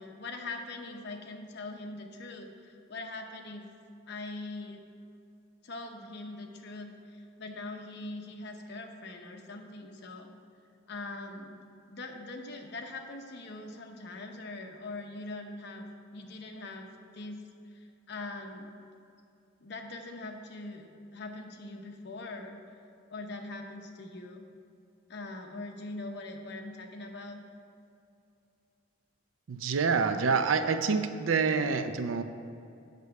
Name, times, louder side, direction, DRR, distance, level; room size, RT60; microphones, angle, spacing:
voice 1, 0.0-3.6 4.1-4.9 5.6-10.3 10.9-11.6 11.9-15.9 16.1-16.9 17.1-17.4 17.7-18.7 19.6-22.6 23.1-24.5 25.1-27.4, left 2 dB, 55° left, 3 dB, 0.8 m, -42 dB
voice 2, 29.5-32.2, right 5 dB, 75° right, 9 dB, 0.5 m, -27 dB
8.3 x 6.6 x 4.7 m, 2.6 s
head